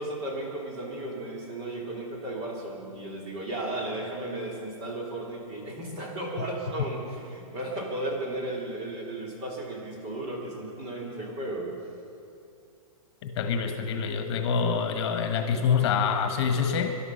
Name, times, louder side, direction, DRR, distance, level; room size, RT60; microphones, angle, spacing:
voice 1, 0.0-11.7, right 1 dB, 35° right, -2 dB, 3.4 m, -35 dB
voice 2, 13.2-16.9, left 6 dB, 50° left, 5 dB, 1.5 m, -26 dB
20.0 x 12.0 x 5.8 m, 2.6 s
hypercardioid pair, 155°, 18 cm